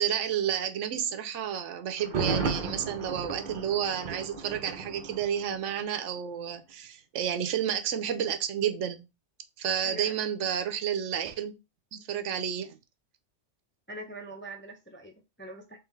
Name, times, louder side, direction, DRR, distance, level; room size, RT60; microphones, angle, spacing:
voice 1, 0.0-9.1 9.6-11.5 11.9-12.8, right 9 dB, 80° right, 1.0 m, -31 dB
Thunder, 2.0-5.9 6.2-6.3, right 4 dB, 50° right, 0.7 m, -34 dB
voice 2, 9.8-10.2 13.9-15.8, right 1 dB, 15° left, 0.4 m, -43 dB
3.6 x 3.2 x 3.1 m
omnidirectional pair, 1.2 m